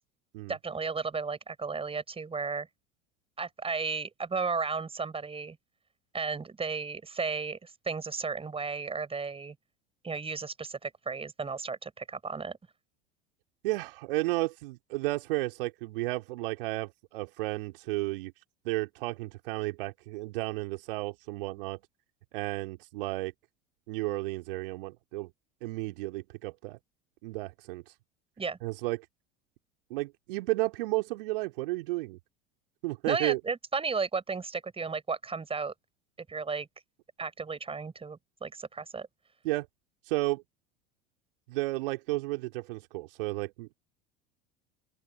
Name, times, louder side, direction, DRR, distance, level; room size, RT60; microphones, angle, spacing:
voice 1, 0.5-2.7 3.4-5.6 6.1-9.5 10.0-12.6 28.4-28.6 33.1-35.7 36.3-36.7 37.2-39.1, right 4 dB, 20° right, 6.1 m, -34 dB
voice 2, 13.6-18.3 18.6-21.8 22.3-23.3 23.9-25.3 25.6-26.8 27.2-27.9 28.6-29.0 29.9-32.2 32.8-33.4 39.4-39.7 40.1-40.4 41.5-43.8, right 20 dB, 65° right, 3.1 m, -33 dB
open air
figure-of-eight pair, 75°, 29 cm